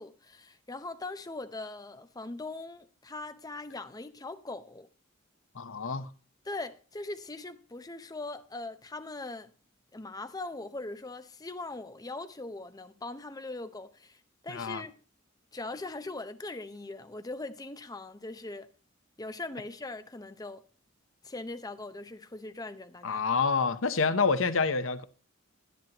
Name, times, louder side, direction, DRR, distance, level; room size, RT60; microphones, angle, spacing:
voice 1, 0.0-4.9 6.4-9.5 9.9-15.0 15.5-18.7 19.2-20.6 21.2-23.2, left 2 dB, 20° left, 0.7 m, -40 dB
voice 2, 5.6-6.1 14.5-14.8 23.0-25.0, left 4 dB, 65° left, 0.8 m, -27 dB
10.5 x 10.5 x 2.9 m
head